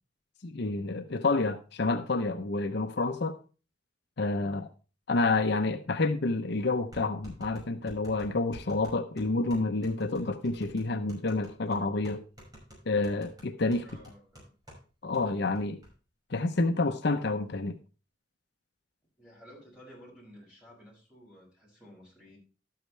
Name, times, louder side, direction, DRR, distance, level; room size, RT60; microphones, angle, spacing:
voice 1, 0.4-3.4 4.2-4.7 5.1-12.2 12.9-13.8 15.0-15.8 16.3-17.8, left 3 dB, 60° left, 0.7 m, -29 dB
sound 1, 6.9-14.8 15.1-15.2 15.5-15.9, equal, 20° right, 5.7 m, -50 dB
voice 2, 13.8-14.5 19.2-22.4, equal, 5° right, 6.1 m, -53 dB
12.5 x 8.7 x 3.3 m
head